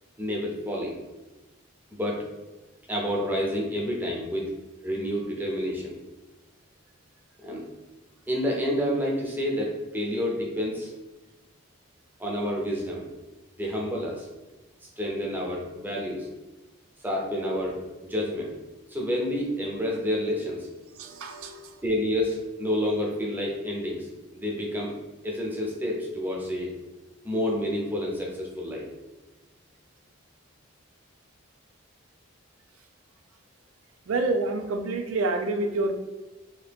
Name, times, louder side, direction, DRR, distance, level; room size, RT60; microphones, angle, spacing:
voice 1, 0.2-1.0 1.9-2.2 2.9-4.5 4.8-6.0 7.4-7.6 8.3-10.9 12.2-13.0 13.6-14.3 15.0-16.3 17.0-18.5 18.9-20.7 21.8-24.9 25.2-26.7 27.2-28.9, equal, 10° right, -2 dB, 0.5 m, -29 dB
voice 2, 21.0-21.8 34.1-36.1, right 2 dB, 85° right, 6 dB, 0.4 m, -28 dB
2.9 x 2.8 x 3.4 m, 1.1 s
head